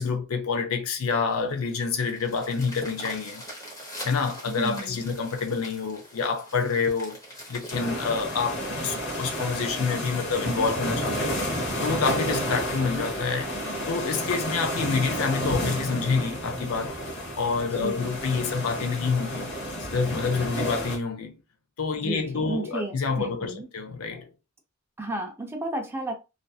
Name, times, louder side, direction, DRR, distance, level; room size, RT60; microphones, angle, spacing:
voice 1, 0.0-3.4 4.0-7.2 7.5-11.4 11.8-13.5 13.9-17.0 17.4-19.5 19.8-21.4 21.8-24.3, left 5 dB, 75° left, 0.5 m, -28 dB
sound 1, 1.1-11.6 12.2-12.3 12.7-12.8 13.1-13.2 13.6-13.9 14.7-14.8, equal, 15° left, 0.9 m, -44 dB
voice 2, 4.5-5.0 17.8-18.2 22.0-23.7 25.0-26.1, right 2 dB, 10° right, 0.5 m, -33 dB
sound 2, 7.7-21.0, equal, 55° left, 0.9 m, -31 dB
2.5 x 2.4 x 2.3 m
head